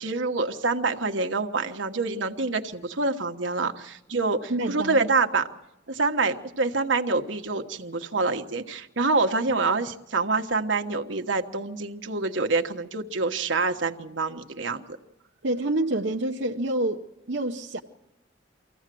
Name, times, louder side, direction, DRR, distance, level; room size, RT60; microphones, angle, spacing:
voice 1, 0.0-5.5 5.9-15.0, right 3 dB, 85° right, 1.3 m, -26 dB
voice 2, 4.5-5.0 15.4-17.8, right 1 dB, 65° right, 0.8 m, -27 dB
24.5 x 15.5 x 7.7 m
head